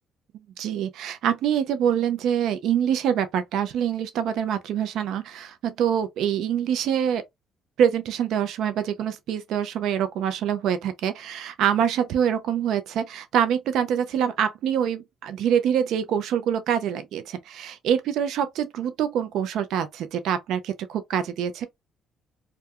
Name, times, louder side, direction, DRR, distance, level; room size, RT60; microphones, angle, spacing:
voice 1, 0.6-7.2 7.8-21.7, right 9 dB, 75° right, 0.5 m, -25 dB
2.3 x 2.3 x 2.6 m
supercardioid pair, 70°, 0 cm